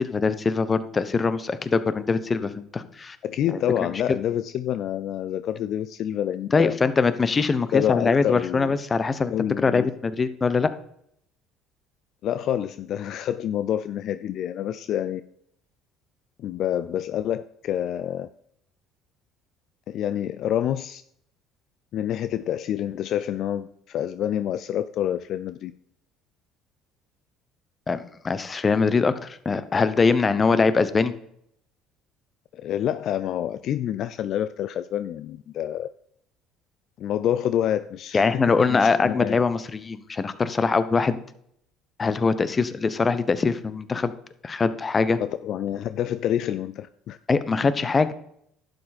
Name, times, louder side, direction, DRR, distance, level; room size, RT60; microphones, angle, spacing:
voice 1, 0.0-3.2 3.5-3.6 6.5-10.7 27.9-31.1 38.1-41.2 42.0-44.1 44.4-45.2 47.3-48.1, left 4 dB, 30° left, 14 dB, 0.9 m, -22 dB
voice 2, 3.2-6.7 7.7-8.8 9.3-9.9 12.2-15.2 16.4-18.3 19.9-21.0 21.9-25.7 32.5-35.9 37.0-38.5 38.8-39.4 45.2-47.2, left 10 dB, 60° left, 13 dB, 0.4 m, -27 dB
11.5 x 7.8 x 4.3 m, 0.71 s
supercardioid pair, 75°, 0 cm